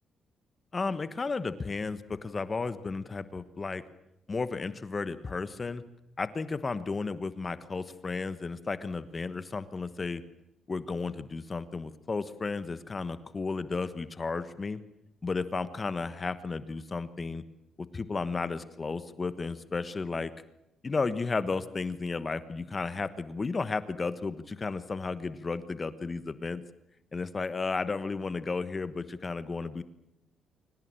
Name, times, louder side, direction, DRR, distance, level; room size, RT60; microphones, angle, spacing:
voice 1, 0.7-3.8 4.3-5.8 6.2-10.2 10.7-14.8 15.2-17.4 17.8-20.3 20.8-26.6 27.1-29.8, left 4 dB, 30° left, 13 dB, 1.2 m, -33 dB
24.0 x 18.5 x 8.9 m, 0.85 s
cardioid pair, 90°, 0 cm